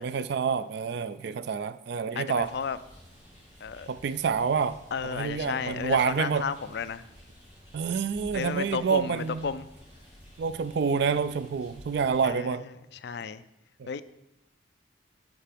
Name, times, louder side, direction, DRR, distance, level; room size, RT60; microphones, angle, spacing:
voice 1, 0.0-2.5 3.9-4.8 5.0-6.5 7.7-9.5 10.4-12.7 13.8-13.9, right 6 dB, 55° right, 14 dB, 0.3 m, -28 dB
voice 2, 2.2-2.8 3.6-3.9 4.9-7.0 8.3-9.7 12.2-12.6 13.0-13.4 13.9-14.0, left 6 dB, 55° left, 13 dB, 0.4 m, -33 dB
sound 1, 2.3-12.2, equal, 10° right, 3.8 m, -52 dB
10.0 x 5.9 x 5.1 m, 0.91 s
head